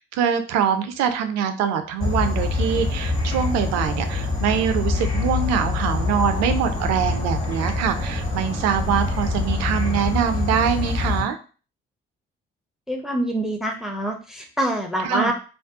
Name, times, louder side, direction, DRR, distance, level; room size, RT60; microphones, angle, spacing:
voice 1, 0.0-11.4 15.0-15.3, right 8 dB, 60° right, 8 dB, 0.5 m, -24 dB
Insect / Frog, 2.0-11.2, left 3 dB, 45° left, 1.3 m, -25 dB
voice 2, 12.9-15.3, right 1 dB, ahead, 3 dB, 0.5 m, -25 dB
2.4 x 2.1 x 2.6 m, 0.37 s
figure-of-eight pair, 40°, 30 cm